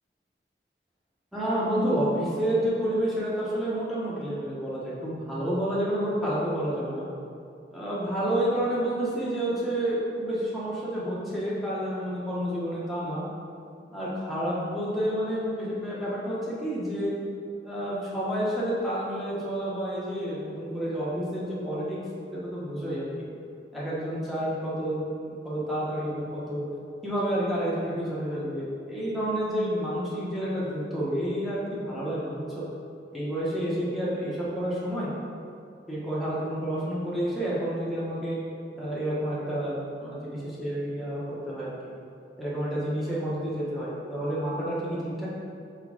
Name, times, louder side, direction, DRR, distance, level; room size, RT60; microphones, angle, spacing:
voice 1, 1.3-7.1 7.7-13.2 13.9-17.2 17.6-22.0 22.3-23.3 23.7-25.0 25.4-26.7 27.0-32.6 33.1-35.1 35.9-38.4 38.8-41.2 41.5-41.7 42.4-45.3, right 1 dB, ahead, -9 dB, 1.2 m, -29 dB
4.7 x 4.0 x 5.0 m, 2.4 s
head